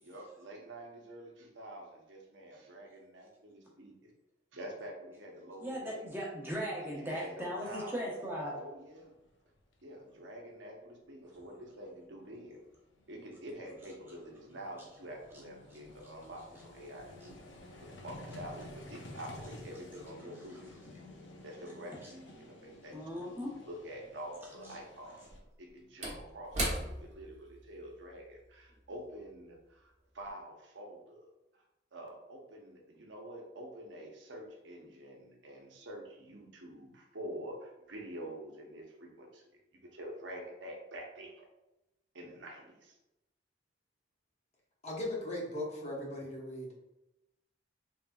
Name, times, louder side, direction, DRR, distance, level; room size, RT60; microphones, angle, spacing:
voice 1, 0.0-4.1 4.5-6.1 6.8-8.1 8.4-9.1 9.8-12.6 13.1-17.4 17.8-20.7 21.4-25.3 25.6-31.3 31.9-39.6 39.9-41.5 42.1-43.0, right 1 dB, 85° right, 0 dB, 0.9 m, -47 dB
voice 2, 5.6-8.5 17.2-17.3 20.2-21.1 22.0-22.1 22.9-23.5 24.6-24.8, equal, 10° right, -4 dB, 0.9 m, -39 dB
Vehicle, 9.3-9.4 9.6-9.7 11.7-11.8 12.0-25.4, left 1 dB, 90° left, 0.7 m, -52 dB
Slam / Wood, 23.6-23.7 25.1-29.8 30.1-30.3, right 1 dB, 40° right, 1.0 m, -40 dB
voice 3, 44.8-46.7, left 1 dB, 40° left, -3 dB, 1.0 m, -38 dB
4.2 x 3.5 x 2.3 m, 0.94 s
head